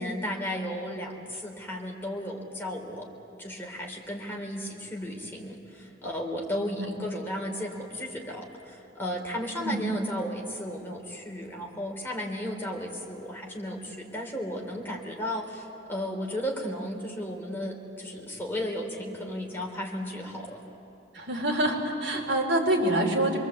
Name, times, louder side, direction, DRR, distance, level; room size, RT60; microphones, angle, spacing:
voice 1, 0.0-3.1 3.4-20.6, equal, 10° left, -1 dB, 3.5 m, -34 dB
voice 2, 6.6-6.9 9.6-9.8 21.1-23.4, right 1 dB, 60° right, -2 dB, 4.4 m, -26 dB
27.5 x 22.0 x 8.2 m, 3.0 s
head